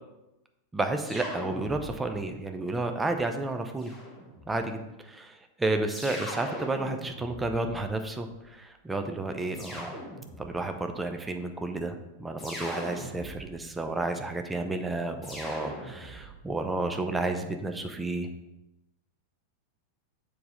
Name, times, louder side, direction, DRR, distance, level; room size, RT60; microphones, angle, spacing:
voice 1, 0.7-3.9 4.5-10.0 10.4-18.3, right 2 dB, 10° right, 6 dB, 0.7 m, -31 dB
sound 1, 1.0-2.3 3.8-4.6 5.9-8.2 9.5-10.7 12.4-13.7 15.2-16.4, equal, 15° left, 2.8 m, -41 dB
7.1 x 4.8 x 4.1 m, 0.94 s
figure-of-eight pair, 90°, 0 cm